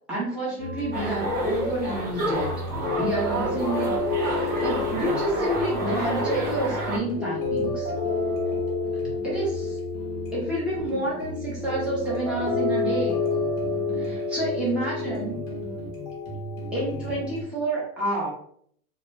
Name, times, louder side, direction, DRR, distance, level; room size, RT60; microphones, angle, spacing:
voice 1, 0.1-2.5 3.0-7.9 9.2-9.8 10.3-13.2 13.9-15.4 16.7-18.3, right 1 dB, ahead, -8 dB, 0.7 m, -29 dB
sound 1, 0.6-17.4, left 3 dB, 30° left, 0.7 m, -30 dB
sound 2, 0.9-7.0, right 1 dB, 20° right, 0.3 m, -29 dB
2.2 x 2.0 x 3.2 m, 0.64 s
hypercardioid pair, 135°, 47 cm